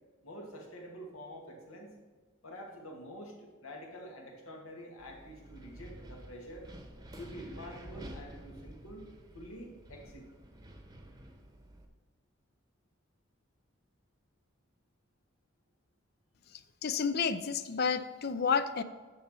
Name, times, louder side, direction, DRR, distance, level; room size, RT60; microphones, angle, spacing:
voice 1, 0.2-2.0 2.4-6.7 7.2-10.3, equal, 85° left, 0 dB, 2.1 m, -47 dB
Wind, 5.0-11.9, right 1 dB, 20° right, 0.9 m, -50 dB
voice 2, 16.8-18.8, left 6 dB, 50° left, 13 dB, 0.5 m, -30 dB
9.2 x 6.8 x 4.4 m, 1.4 s
head